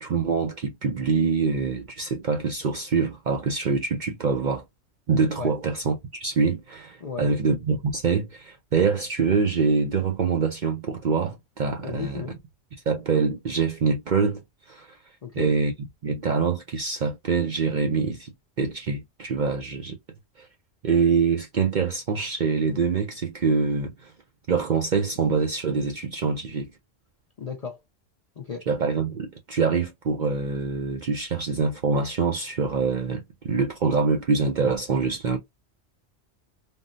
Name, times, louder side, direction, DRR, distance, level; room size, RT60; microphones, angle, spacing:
voice 1, 0.0-4.6 5.1-12.2 12.9-15.0 15.4-15.7 16.0-18.3 18.6-20.0 20.4-20.5 20.8-24.1 24.5-26.7 28.7-35.4, right 5 dB, 55° right, 0.5 m, -25 dB
voice 2, 7.0-7.4 11.8-12.4 15.2-15.5 27.4-27.8 28.4-28.7, left 5 dB, 55° left, 0.4 m, -34 dB
3.6 x 2.0 x 2.5 m
omnidirectional pair, 1.3 m